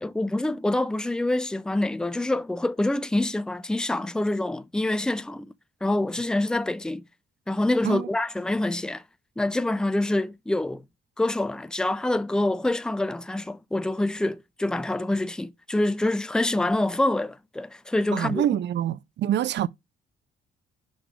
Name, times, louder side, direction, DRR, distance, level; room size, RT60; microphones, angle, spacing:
voice 1, 0.0-5.5 5.8-7.0 7.5-9.0 9.4-10.8 11.2-18.4, left 1 dB, 5° left, 0.5 m, -26 dB
voice 2, 18.1-19.7, right 11 dB, 65° right, 0.5 m, -26 dB
5.4 x 5.1 x 4.8 m
cardioid pair, 90°, 20 cm